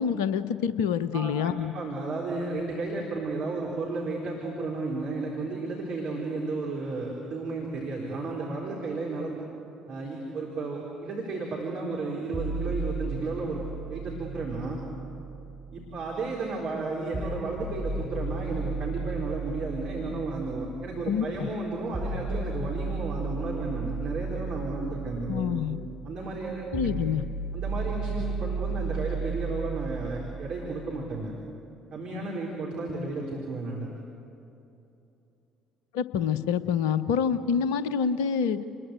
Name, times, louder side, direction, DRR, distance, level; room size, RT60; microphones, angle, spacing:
voice 1, 0.0-1.7 21.1-21.5 25.3-25.8 26.7-27.2 35.9-38.6, left 7 dB, 70° left, 15 dB, 0.8 m, -27 dB
voice 2, 1.7-9.3 9.9-13.6 13.9-14.8 15.7-25.6 26.0-26.7 27.5-31.3 31.9-33.9, right 3 dB, 50° right, -3 dB, 4.1 m, -33 dB
sound 1, 12.3-16.3 17.1-31.2, right 4 dB, 15° right, 5.2 m, -35 dB
29.5 x 21.0 x 8.3 m, 2.8 s
figure-of-eight pair, 50°, 2 cm